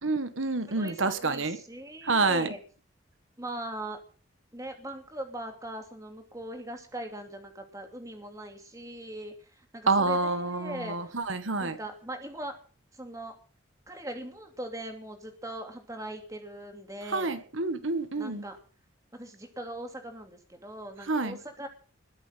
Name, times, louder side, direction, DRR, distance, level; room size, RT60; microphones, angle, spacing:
voice 1, 0.0-1.6 2.0-2.5 9.9-11.8 17.1-18.4 21.1-21.4, right 3 dB, 85° right, 1.7 m, -28 dB
voice 2, 0.7-2.6 3.4-4.0 4.5-11.2 11.6-12.6 13.0-13.3 13.9-17.4 18.2-18.6 19.1-21.7, right 1 dB, 15° right, 2.8 m, -40 dB
21.0 x 7.3 x 7.6 m
head